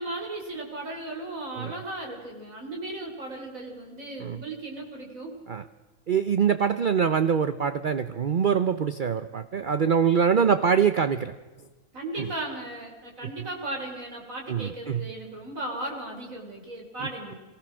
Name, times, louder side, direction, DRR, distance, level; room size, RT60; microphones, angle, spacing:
voice 1, 0.0-5.3 11.9-17.4, right 1 dB, 65° right, 0 dB, 4.8 m, -36 dB
voice 2, 6.1-11.3 12.2-12.3 14.5-15.1, right 7 dB, 45° right, 12 dB, 0.7 m, -24 dB
24.0 x 18.5 x 6.2 m, 1.2 s
omnidirectional pair, 1.5 m